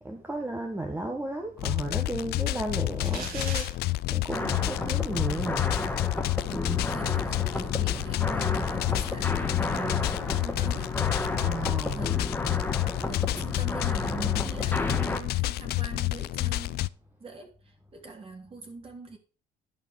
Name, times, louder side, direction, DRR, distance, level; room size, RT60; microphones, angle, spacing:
voice 1, 0.0-5.7 11.4-12.1, right 2 dB, 10° right, 1.4 m, -34 dB
sound 1, 1.6-16.9, left 18 dB, 70° left, 0.4 m, -29 dB
voice 2, 3.0-3.4 4.4-4.9 6.5-11.0 11.9-16.9 17.2-19.2, right 3 dB, 35° right, 3.2 m, -42 dB
sound 2, 3.0-3.7, right 4 dB, 60° right, 3.7 m, -37 dB
sound 3, 4.3-15.2, left 2 dB, 10° left, 1.5 m, -32 dB
11.0 x 5.2 x 6.4 m
cardioid pair, 110°, 17 cm